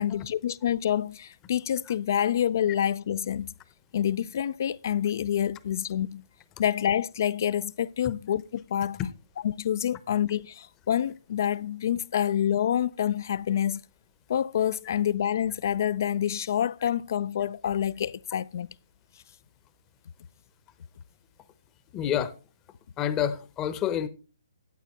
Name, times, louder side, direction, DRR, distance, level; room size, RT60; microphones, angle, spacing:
voice 1, 0.0-3.5 3.9-6.2 6.6-9.0 9.4-13.8 14.3-18.7, left 10 dB, 50° left, 0.4 m, -27 dB
voice 2, 21.9-22.3 23.0-24.1, left 9 dB, 20° left, 0.8 m, -28 dB
13.0 x 8.1 x 3.1 m
figure-of-eight pair, 130°, 2 cm